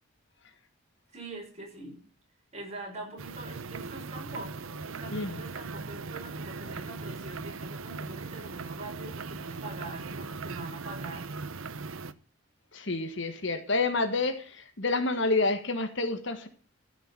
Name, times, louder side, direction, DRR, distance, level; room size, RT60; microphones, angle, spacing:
voice 1, 1.1-2.0 2.5-11.7, right 2 dB, 30° right, -1 dB, 5.7 m, -44 dB
sound 1, 3.2-12.1, right 4 dB, 70° right, 0.8 m, -39 dB
voice 2, 12.7-16.5, left 3 dB, 55° left, 9 dB, 1.4 m, -29 dB
14.0 x 6.1 x 7.5 m, 0.41 s
head